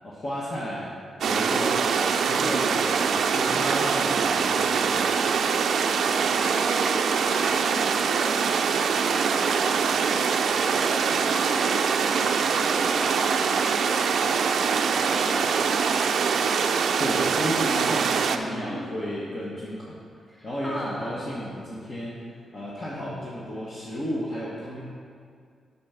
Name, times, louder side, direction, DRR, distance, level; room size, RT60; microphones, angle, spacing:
voice 1, 0.0-0.9 1.2-5.0 17.0-20.0 20.4-24.8, equal, 35° left, -6 dB, 1.3 m, -33 dB
sound 1, 1.2-18.4, right 6 dB, 70° right, 0.5 m, -23 dB
voice 2, 5.5-14.5 14.9-16.0 18.3-18.9 20.3-21.2, equal, 20° left, -4 dB, 2.1 m, -38 dB
8.5 x 6.0 x 5.7 m, 2.2 s
wide cardioid pair, 140°, 0 cm